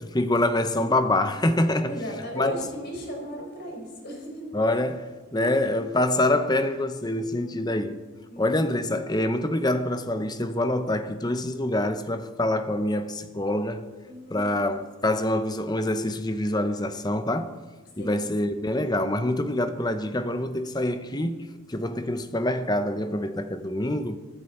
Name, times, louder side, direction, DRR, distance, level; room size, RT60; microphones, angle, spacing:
voice 1, 0.0-2.0 2.3-2.6 4.5-8.0 8.4-13.9 14.3-17.6 18.0-21.4 21.7-24.2, left 1 dB, 20° left, 0.7 m, -26 dB
voice 2, 1.9-4.5 7.3-7.6 8.3-8.5 14.0-14.5 18.0-18.2, equal, 50° left, 4.9 m, -36 dB
23.0 x 10.0 x 4.4 m
head